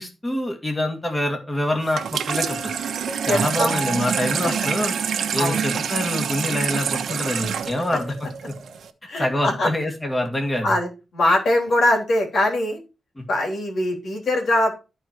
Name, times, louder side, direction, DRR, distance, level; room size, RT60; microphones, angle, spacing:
voice 1, 0.0-2.7 3.3-4.9 5.3-8.3 9.2-10.7 13.2-13.3, left 1 dB, 15° left, 2 dB, 2.1 m, -25 dB
Water tap faucet / Sink (filling or washing), 1.8-8.9, right 7 dB, 90° right, 1.1 m, -26 dB
Piano, 2.3-6.1, right 2 dB, 40° left, 4.4 m, -35 dB
voice 2, 3.3-3.8 4.2-4.5 5.4-5.6 9.1-9.7 10.6-12.8 13.3-14.7, left 1 dB, 70° left, 1 dB, 3.5 m, -22 dB
13.5 x 4.6 x 4.5 m, 0.30 s
cardioid pair, 100°, 0 cm